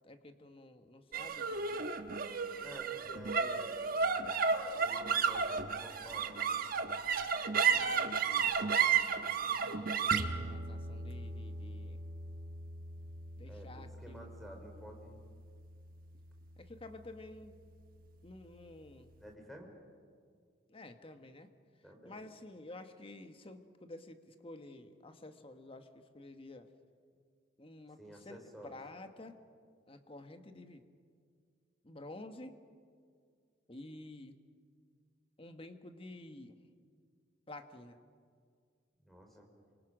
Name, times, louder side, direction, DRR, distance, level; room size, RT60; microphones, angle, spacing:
voice 1, 0.0-1.9 7.6-12.0 13.4-14.3 16.6-17.6 18.2-19.2 20.7-21.5 22.0-26.7 27.6-28.4 28.6-29.4 29.9-30.8 31.8-32.6 33.7-34.3 35.4-36.6 37.5-38.0, left 2 dB, 30° left, 7 dB, 1.5 m, -51 dB
sound 1, 1.1-17.7, right 6 dB, 50° right, 1.2 m, -34 dB
voice 2, 2.6-4.2 4.7-6.7 13.4-15.2 19.2-19.7 21.8-22.2 28.0-28.8 39.0-39.5, equal, ahead, 3 dB, 3.8 m, -51 dB
28.5 x 25.5 x 6.3 m, 2.1 s
head